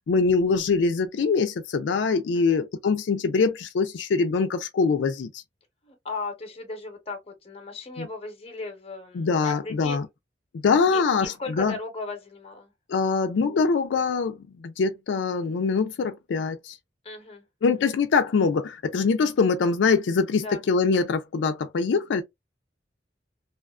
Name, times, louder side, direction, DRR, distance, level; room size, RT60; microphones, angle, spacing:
voice 1, 0.1-5.4 8.0-8.1 9.1-10.1 10.6-11.8 12.9-16.8 17.6-22.2, left 4 dB, 90° left, 0.4 m, -23 dB
voice 2, 5.8-10.1 10.9-12.7 17.0-17.4 20.4-20.6, left 3 dB, 30° left, 0.8 m, -36 dB
2.4 x 2.3 x 2.3 m
head